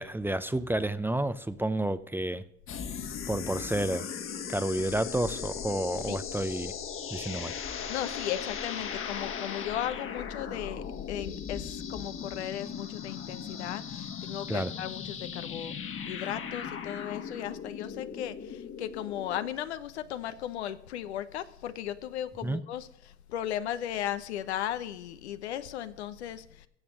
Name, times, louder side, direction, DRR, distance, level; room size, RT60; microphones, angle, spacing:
voice 1, 0.0-2.4 3.3-4.1 4.5-6.7 7.1-7.5 14.5-14.7 22.4-22.6, right 1 dB, 5° right, 14 dB, 0.6 m, -30 dB
sound 1, 2.7-19.5, left 7 dB, 40° left, 1.6 m, -38 dB
voice 2, 7.9-15.8 16.1-22.9 23.3-26.7, left 11 dB, 80° left, 12 dB, 0.9 m, -36 dB
16.0 x 6.9 x 6.3 m, 0.77 s
hypercardioid pair, 75°, 33 cm